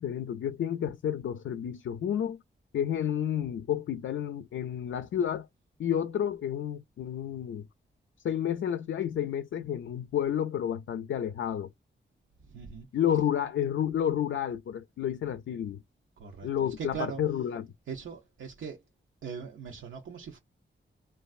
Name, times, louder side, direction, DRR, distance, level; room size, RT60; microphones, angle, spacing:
voice 1, 0.0-2.4 2.7-5.5 5.8-7.7 8.2-11.7 12.9-15.8 16.4-17.7, left 9 dB, 85° left, 0.4 m, -30 dB
voice 2, 12.5-12.9 16.2-17.2 17.9-18.8 19.2-20.4, right 6 dB, 85° right, 0.6 m, -40 dB
3.1 x 2.3 x 2.4 m
wide cardioid pair, 85°, 20 cm